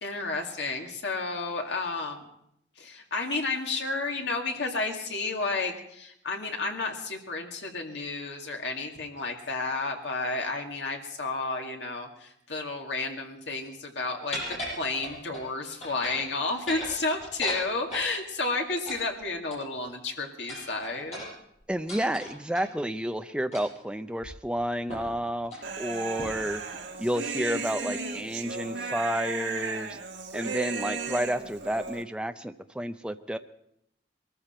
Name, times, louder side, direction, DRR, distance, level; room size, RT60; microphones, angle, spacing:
voice 1, 0.0-2.3 2.8-21.2, left 3 dB, 70° left, 2 dB, 2.2 m, -31 dB
sound 1, 14.3-15.5 15.8-16.3 16.6-18.1 18.9-19.9 20.5-22.7 23.5-23.8 24.2-24.3 24.9-25.2 25.4-25.7 26.2-26.5, equal, 35° left, 7.3 m, -38 dB
voice 2, 21.7-26.6 27.0-30.0 30.3-33.4, equal, 5° right, 8 dB, 0.5 m, -30 dB
Human voice, 25.6-32.0, right 4 dB, 75° right, 1.5 m, -35 dB
22.0 x 14.0 x 4.4 m, 0.76 s
head